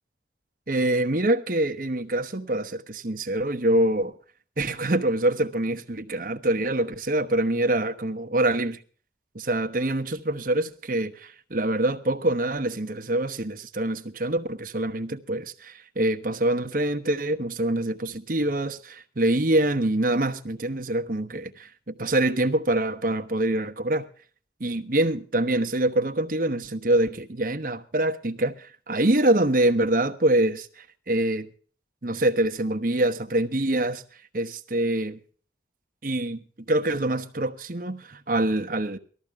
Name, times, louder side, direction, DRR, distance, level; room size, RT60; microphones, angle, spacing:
voice 1, 0.7-4.1 4.6-8.8 9.3-24.1 24.6-31.5 32.0-34.0 34.3-35.2 36.0-39.0, right 1 dB, 45° right, 1.1 m, -25 dB
19.5 x 14.0 x 3.6 m
head